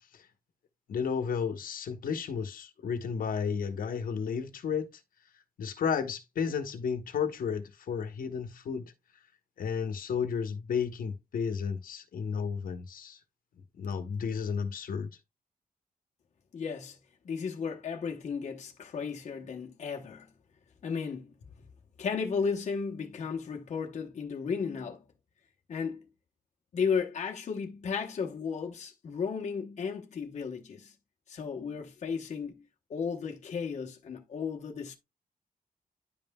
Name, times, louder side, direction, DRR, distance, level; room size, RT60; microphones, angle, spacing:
voice 1, 0.9-4.9 5.6-8.9 9.6-13.2 13.8-15.1, left 6 dB, 75° left, 1.0 m, -32 dB
voice 2, 16.5-17.0 17.2-20.3 20.8-21.3 22.0-25.0 25.7-26.0 26.7-30.9 31.3-32.6 32.9-35.0, left 6 dB, 50° left, 0.9 m, -34 dB
10.5 x 5.4 x 2.2 m
wide cardioid pair, 155°, 15 cm